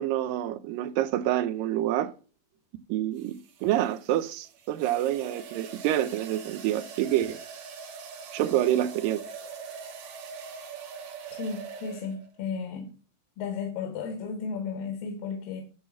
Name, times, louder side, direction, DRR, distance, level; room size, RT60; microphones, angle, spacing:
voice 1, 0.0-2.1 2.9-7.4 8.3-9.3, right 12 dB, 85° right, 2.3 m, -27 dB
sound 1, 1.2-1.5 3.2-12.4, right 6 dB, 65° right, 2.4 m, -43 dB
voice 2, 11.3-12.9 13.4-15.6, left 5 dB, 85° left, 2.9 m, -34 dB
9.7 x 3.7 x 7.2 m
omnidirectional pair, 3.9 m